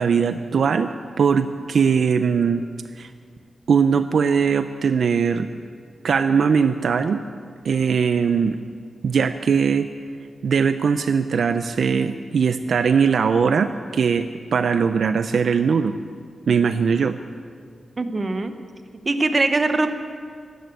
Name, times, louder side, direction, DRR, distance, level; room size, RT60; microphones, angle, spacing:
voice 1, 0.0-2.6 3.0-3.1 3.7-5.5 6.0-7.2 7.6-8.6 9.0-9.9 10.4-14.3 14.5-15.9 16.5-17.2, right 6 dB, 65° right, 10 dB, 0.5 m, -20 dB
voice 2, 18.0-18.5 19.0-19.9, right 2 dB, 30° right, 8 dB, 0.9 m, -21 dB
13.0 x 12.5 x 8.4 m, 2.1 s
wide cardioid pair, 150°, 0 cm